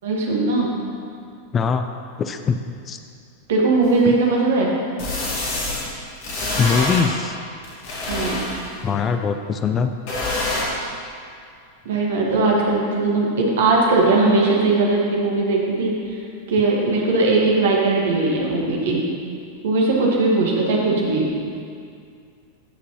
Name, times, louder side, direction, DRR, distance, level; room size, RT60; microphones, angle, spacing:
voice 1, 0.0-0.8 3.5-4.7 8.1-8.4 11.8-16.2 16.5-19.0 19.6-21.3, right 3 dB, 60° right, -2 dB, 1.6 m, -19 dB
voice 2, 1.5-1.9 2.2-3.0 4.1-4.2 6.6-7.4 8.8-9.9, left 6 dB, 25° left, 7 dB, 0.4 m, -22 dB
sound 1, 3.8-3.9 5.0-5.8 6.2-7.0 7.6-8.8 10.1-10.6, left 2 dB, 50° left, 2.0 m, -26 dB
15.5 x 6.0 x 3.1 m, 2.3 s
figure-of-eight pair, 90°, 0 cm